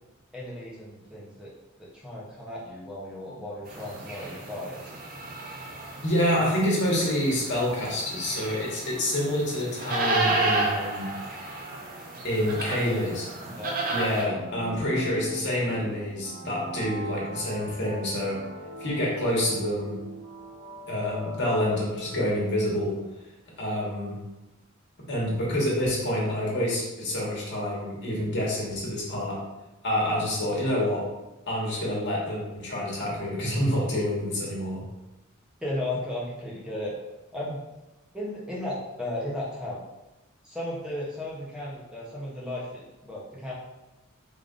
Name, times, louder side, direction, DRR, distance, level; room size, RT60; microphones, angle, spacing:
voice 1, 0.3-1.5 1.8-4.8 12.7-13.0 13.4-13.8 35.6-36.9 37.3-37.6 38.1-39.8 40.4-43.5, left 1 dB, 5° right, -6 dB, 0.7 m, -35 dB
sound 1, 3.7-14.2, right 2 dB, 40° right, 0.6 m, -32 dB
voice 2, 6.0-11.1 12.2-13.2 13.9-18.4 18.8-20.0 20.9-23.0 23.6-24.2 25.1-29.4 29.8-31.0 31.5-34.8, left 1 dB, 55° left, -4 dB, 1.2 m, -27 dB
sound 2, 14.2-22.8, equal, 80° right, 1.3 m, -41 dB
3.4 x 2.5 x 3.7 m, 1.0 s
head